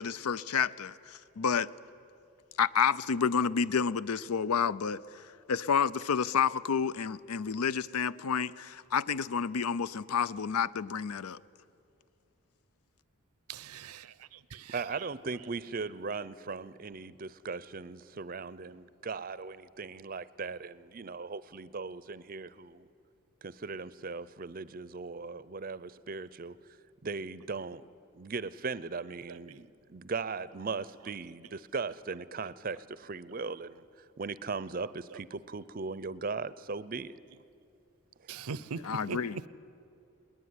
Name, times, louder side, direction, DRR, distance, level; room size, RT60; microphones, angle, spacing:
voice 1, 0.0-1.7 2.6-11.4 38.8-39.4, left 6 dB, 85° left, 0.5 m, -30 dB
voice 2, 13.5-15.1 29.3-29.5 35.1-35.2 38.3-39.5, right 5 dB, 85° right, 0.6 m, -41 dB
voice 3, 14.7-22.9 23.4-26.6 27.0-27.8 28.1-37.1 38.2-38.4, right 4 dB, 40° right, 0.5 m, -38 dB
21.0 x 19.5 x 9.6 m
head